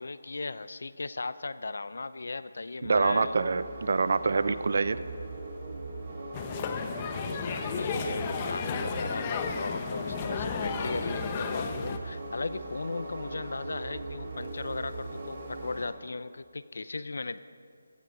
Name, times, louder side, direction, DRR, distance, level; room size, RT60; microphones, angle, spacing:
voice 1, 0.0-3.3 7.2-17.4, left 3 dB, 70° left, 15 dB, 0.6 m, -37 dB
sound 1, 2.8-15.9, right 2 dB, 40° right, 3.8 m, -40 dB
voice 2, 2.8-5.0, right 4 dB, 60° right, 14 dB, 0.7 m, -26 dB
sound 2, 6.3-12.0, left 6 dB, 25° left, 0.9 m, -33 dB
17.5 x 14.0 x 5.3 m, 2.3 s
figure-of-eight pair, 160°, 0 cm